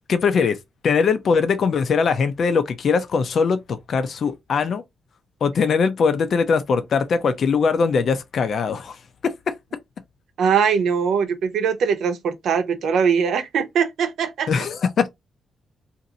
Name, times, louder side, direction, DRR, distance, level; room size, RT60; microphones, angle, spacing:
voice 1, 0.1-0.6 0.8-4.8 5.4-9.0 9.2-9.5 14.5-15.1, left 5 dB, 55° left, 0.5 m, -21 dB
voice 2, 10.4-14.5, right 6 dB, 80° right, 0.8 m, -21 dB
2.6 x 2.5 x 3.9 m
wide cardioid pair, 150°, 0 cm